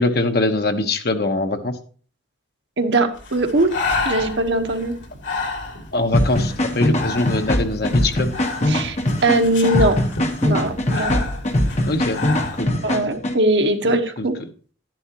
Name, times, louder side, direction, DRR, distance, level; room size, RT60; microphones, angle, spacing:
voice 1, 0.0-1.8 5.9-8.3 11.9-12.2 12.5-12.7 14.2-14.3, left 2 dB, 55° left, 6 dB, 1.1 m, -22 dB
voice 2, 2.8-3.7 4.0-4.9 8.7-9.0 9.2-10.0 10.4-11.2 12.8-14.3, right 2 dB, 65° right, 4 dB, 1.2 m, -20 dB
Breathing, 3.2-12.6, left 3 dB, 80° left, 2.5 m, -30 dB
sound 1, 6.1-13.3, left 1 dB, 35° left, 1.2 m, -22 dB
12.0 x 10.5 x 3.0 m, 0.41 s
head